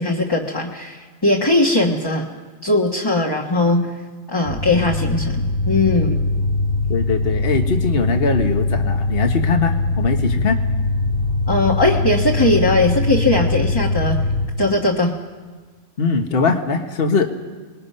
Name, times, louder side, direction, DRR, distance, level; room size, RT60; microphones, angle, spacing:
voice 1, 0.0-2.3 2.6-3.9 4.3-6.2 11.5-14.2 14.6-15.1, left 2 dB, 20° left, -1 dB, 1.3 m, -19 dB
sound 1, 4.5-14.4, left 2 dB, 70° left, 3.6 m, -21 dB
voice 2, 6.9-10.6 16.0-17.3, left 4 dB, 50° left, 5 dB, 1.5 m, -21 dB
29.5 x 20.5 x 5.6 m, 1.4 s
omnidirectional pair, 1.3 m